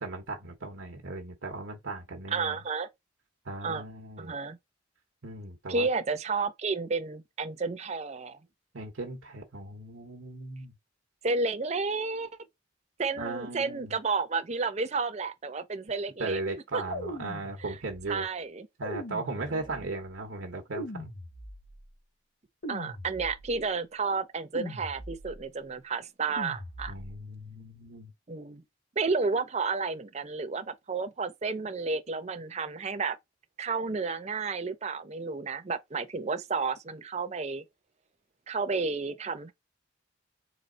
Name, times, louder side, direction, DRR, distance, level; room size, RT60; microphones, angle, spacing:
voice 1, 0.0-2.6 3.4-4.4 5.2-5.9 8.7-10.7 13.2-13.9 16.2-18.3 18.8-21.1 26.9-28.1, right 3 dB, 90° right, 1.0 m, -37 dB
voice 2, 2.3-2.9 3.6-3.8 4.2-4.6 5.7-8.4 11.2-12.3 13.0-16.4 16.7-16.8 17.7-17.8 18.1-18.7 19.3-19.6 22.7-26.9 28.3-28.6 29.0-33.2 33.6-37.6 38.5-39.5, right 4 dB, 35° right, 0.6 m, -31 dB
sound 1, 16.9-18.1 18.8-20.0 20.7-21.9 22.6-23.7 24.5-25.5 26.4-27.3, equal, 55° left, 1.7 m, -40 dB
3.9 x 3.2 x 3.8 m
head